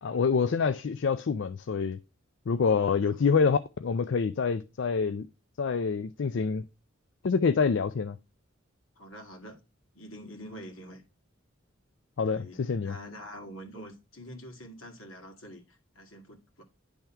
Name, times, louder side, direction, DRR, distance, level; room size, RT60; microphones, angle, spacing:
voice 1, 0.0-2.0 2.5-5.3 5.6-6.6 7.2-8.2 12.2-13.0, left 5 dB, 60° left, 0.4 m, -26 dB
voice 2, 2.6-3.1 9.0-9.6 9.9-11.0 12.3-16.6, equal, 80° left, 2.1 m, -46 dB
10.5 x 3.6 x 4.4 m
head